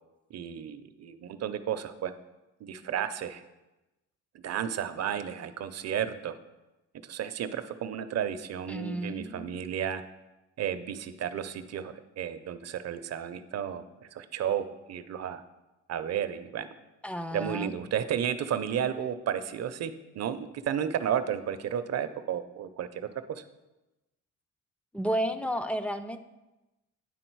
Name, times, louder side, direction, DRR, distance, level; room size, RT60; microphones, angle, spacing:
voice 1, 0.3-2.1 2.6-3.4 4.4-6.3 7.0-10.0 10.6-13.8 14.1-15.4 15.9-16.7 17.3-23.0 23.3-23.4, right 9 dB, 55° right, 11 dB, 0.6 m, -32 dB
voice 2, 8.7-9.6 17.0-17.8 24.9-26.2, equal, 5° left, 10 dB, 0.4 m, -32 dB
10.0 x 3.8 x 4.6 m, 1.0 s
cardioid pair, 90°, 30 cm